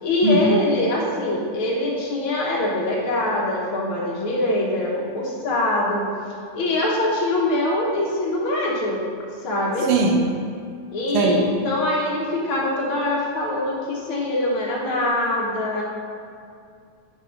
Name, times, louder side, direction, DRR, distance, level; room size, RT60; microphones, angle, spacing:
voice 1, 0.0-6.1 6.5-9.0 9.4-9.9 10.9-15.8, left 1 dB, 65° left, -3 dB, 1.4 m, -23 dB
voice 2, 9.9-10.3 11.1-11.5, right 3 dB, 90° right, 2 dB, 1.3 m, -19 dB
7.3 x 5.1 x 5.1 m, 2.3 s
omnidirectional pair, 3.5 m